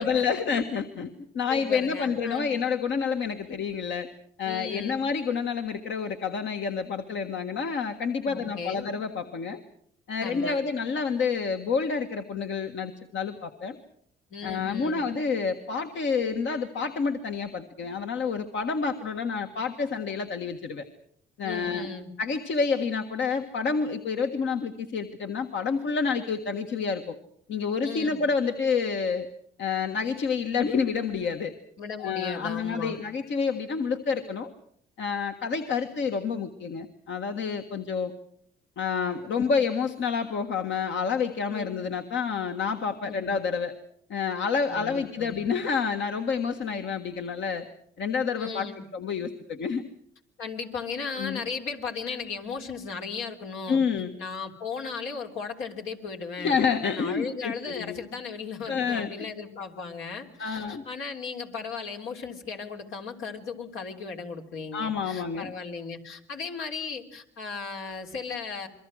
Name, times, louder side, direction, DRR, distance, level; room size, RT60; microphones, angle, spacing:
voice 1, 0.0-4.1 4.4-9.6 10.1-13.8 14.4-20.8 21.4-21.9 22.2-27.2 27.5-29.3 29.6-31.5 32.0-34.5 35.0-38.1 38.8-43.7 44.1-47.6 48.0-49.8 51.2-51.4 53.7-54.1 56.4-58.0 58.6-59.3 60.4-60.8 64.7-65.5, left 5 dB, 70° left, 5 dB, 1.7 m, -28 dB
voice 2, 1.5-2.6 3.4-3.5 4.4-5.0 8.2-8.9 10.2-10.6 14.3-15.0 21.4-22.1 27.8-28.2 31.8-33.0 35.9-36.0 39.3-39.5 41.5-41.8 43.0-43.3 44.7-45.4 48.3-48.8 50.4-53.8 54.2-56.6 56.9-68.7, left 5 dB, 85° left, 2 dB, 3.4 m, -36 dB
27.5 x 23.0 x 6.4 m, 0.67 s
cardioid pair, 90°, 20 cm